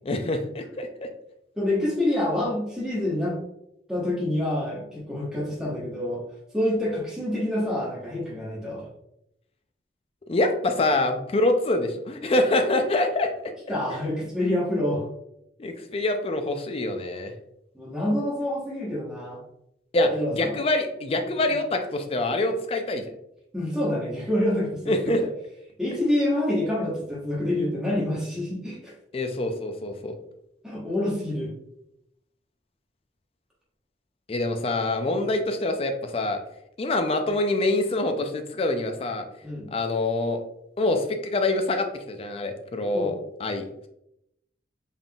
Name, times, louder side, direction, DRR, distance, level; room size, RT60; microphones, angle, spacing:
voice 1, 0.0-1.1 10.3-13.3 15.6-17.3 19.9-23.0 24.9-25.2 29.1-30.2 34.3-36.4 36.8-39.2 39.7-40.4 40.8-43.7, left 2 dB, 30° left, 6 dB, 0.4 m, -25 dB
voice 2, 1.6-3.4 3.9-6.2 6.5-8.8 13.7-15.0 17.7-19.4 20.1-20.5 23.5-25.3 25.8-28.9 30.6-31.5 39.4-39.7 42.9-43.1, left 1 dB, 5° right, -7 dB, 1.1 m, -27 dB
3.9 x 3.6 x 2.3 m, 0.82 s
head